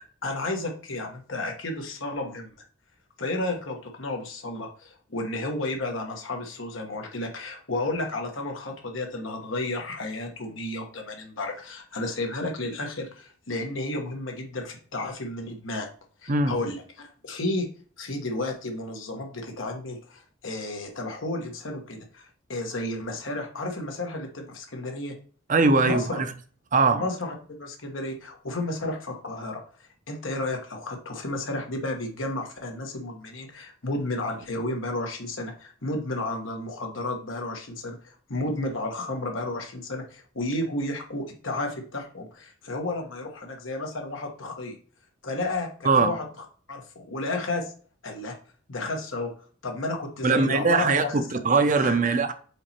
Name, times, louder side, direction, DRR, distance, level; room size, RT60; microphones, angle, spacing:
voice 1, 0.2-2.5 3.2-15.9 16.2-17.7 18.0-22.2 22.5-25.1 25.8-26.2 26.9-29.6 30.1-44.7 45.2-46.2 46.7-47.7 48.0-48.3 48.7-49.3 49.6-51.3 51.7-52.0, left 2 dB, 85° left, 1.4 m, -32 dB
voice 2, 25.5-26.3 26.7-27.0 45.8-46.1 50.2-52.3, right 4 dB, 40° right, 0.6 m, -21 dB
5.1 x 4.2 x 4.4 m
head